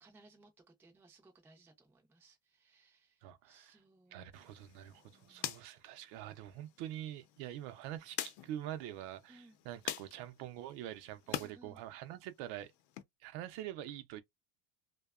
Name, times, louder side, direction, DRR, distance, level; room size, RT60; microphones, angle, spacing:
voice 1, 0.0-4.2 5.0-5.5 9.3-9.6 11.3-11.8, right 2 dB, 5° right, 0.4 m, -62 dB
voice 2, 3.2-3.8 4.1-12.7 13.2-14.2, right 12 dB, 60° right, 0.6 m, -45 dB
sound 1, 4.3-11.5 11.9-13.0, left 12 dB, 65° left, 0.7 m, -46 dB
2.7 x 2.2 x 2.3 m
supercardioid pair, 135°, 47 cm